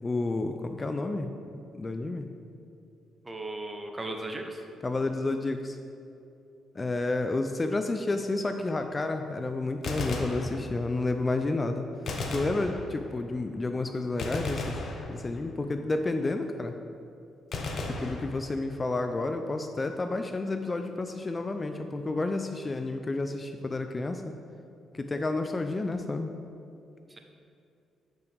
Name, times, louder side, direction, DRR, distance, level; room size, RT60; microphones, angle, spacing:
voice 1, 0.0-1.3 1.8-2.3 4.8-5.8 6.8-11.8 12.3-14.8 15.1-16.7 18.0-24.3 24.9-26.3, left 2 dB, 25° left, 7 dB, 0.4 m, -30 dB
voice 2, 3.2-4.6 27.1-27.2, right 2 dB, 20° right, 4 dB, 0.9 m, -36 dB
Gunshot gunfire, 9.7-11.1 12.1-13.3 14.2-15.6 17.5-18.9, left 2 dB, 55° left, 0.9 m, -35 dB
10.0 x 5.8 x 3.4 m, 2.6 s
cardioid pair, 90°, 0 cm